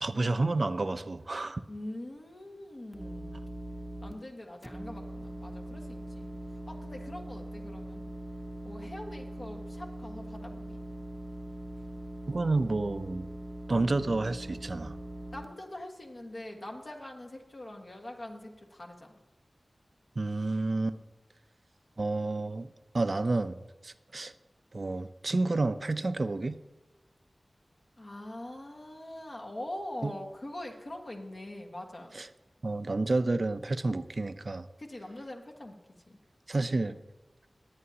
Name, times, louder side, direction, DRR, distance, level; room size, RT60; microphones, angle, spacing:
voice 1, 0.0-1.6 12.3-13.3 13.7-15.0 20.2-21.0 22.0-24.3 24.7-26.6 30.0-30.1 32.1-32.3 32.6-34.7 36.5-37.0, right 2 dB, 50° right, 11 dB, 0.6 m, -30 dB
voice 2, 1.7-3.4 4.0-6.3 6.7-8.0 8.6-10.8 15.3-19.1 28.0-32.1 34.8-35.8 36.1-36.2, left 1 dB, 55° left, 1 dB, 1.6 m, -43 dB
sound 1, 2.9-4.1 4.6-15.4, right 1 dB, 15° right, 0.8 m, -41 dB
20.5 x 8.8 x 2.9 m, 1.1 s
wide cardioid pair, 70°, 0 cm